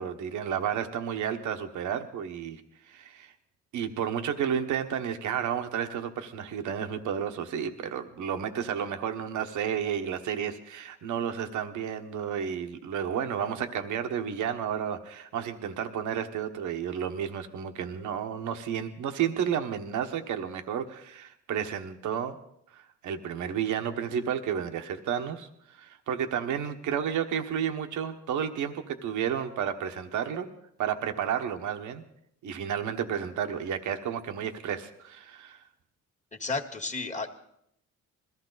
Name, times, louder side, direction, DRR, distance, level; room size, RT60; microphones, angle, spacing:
voice 1, 0.0-2.6 2.9-3.3 3.7-22.4 22.7-30.5 30.8-32.0 32.4-35.6, right 8 dB, 80° right, 7 dB, 1.3 m, -32 dB
voice 2, 36.3-37.3, left 3 dB, 25° left, 4 dB, 1.7 m, -32 dB
21.0 x 15.0 x 4.0 m, 0.73 s
cardioid pair, 90°, 30 cm